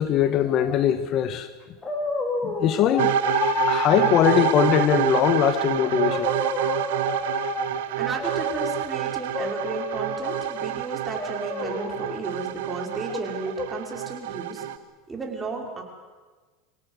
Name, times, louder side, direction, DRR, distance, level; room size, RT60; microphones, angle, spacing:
voice 1, 0.0-1.5 2.4-6.3 6.9-7.9, left 10 dB, 45° left, 1.2 m, -22 dB
sound 1, 1.8-2.9 5.4-5.5 5.8-7.5 8.1-8.9 9.3-10.7 11.2-12.2 13.1-13.7, left 2 dB, 20° left, 4.2 m, -31 dB
sound 2, 3.0-14.8, right 13 dB, 75° right, 1.1 m, -27 dB
voice 2, 8.0-14.7 15.1-15.8, right 3 dB, 15° right, 5.2 m, -34 dB
25.5 x 17.5 x 8.1 m
supercardioid pair, 120°, 0 cm